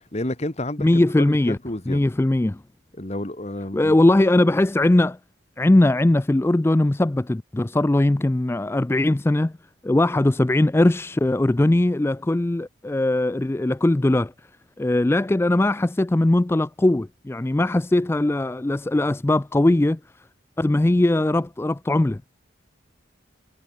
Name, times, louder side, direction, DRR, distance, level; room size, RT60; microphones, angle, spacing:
voice 1, 0.1-0.9 1.2-2.1 3.0-3.9, left 1 dB, 35° left, 1.7 m, -30 dB
voice 2, 0.8-1.6 1.9-2.6 3.7-5.2 5.6-9.5 9.8-14.3 14.8-20.0 20.6-22.2, left 1 dB, 10° left, 0.3 m, -20 dB
head